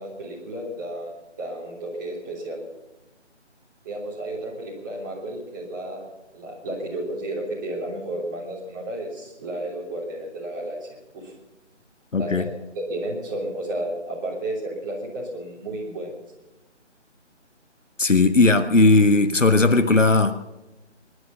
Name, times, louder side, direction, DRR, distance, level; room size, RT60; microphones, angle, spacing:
voice 1, 0.0-2.6 3.8-6.1 6.3-10.9 11.1-11.3 12.2-12.5 12.7-16.1, right 1 dB, 15° right, -4 dB, 3.1 m, -32 dB
voice 2, 12.1-12.5 18.0-20.3, left 3 dB, 80° left, 9 dB, 1.6 m, -17 dB
21.5 x 11.5 x 5.8 m, 0.99 s
figure-of-eight pair, 155°, 37 cm